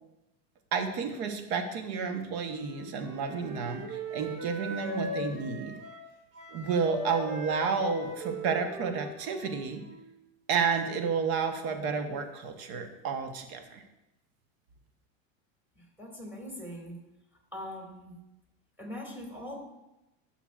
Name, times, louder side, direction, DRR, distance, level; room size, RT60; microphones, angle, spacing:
voice 1, 0.7-5.7 6.5-9.8 10.5-13.8, right 5 dB, 60° right, 6 dB, 1.2 m, -31 dB
Wind instrument woodwind instrument, 2.5-10.2, right 1 dB, 40° right, 2.3 m, -40 dB
voice 2, 15.8-17.0 17.5-18.2 18.8-19.6, left 1 dB, 5° right, -1 dB, 2.3 m, -41 dB
11.5 x 5.9 x 2.5 m, 0.93 s
supercardioid pair, 125°, 39 cm